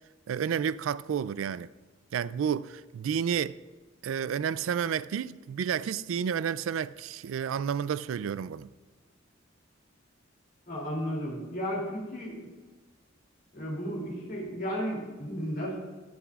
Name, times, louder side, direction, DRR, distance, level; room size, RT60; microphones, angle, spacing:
voice 1, 0.3-1.7 2.1-3.6 4.0-8.7, right 7 dB, 75° right, 0.3 m, -30 dB
voice 2, 10.7-12.5 13.5-15.8, equal, 50° left, 2.8 m, -34 dB
20.0 x 7.0 x 2.4 m
head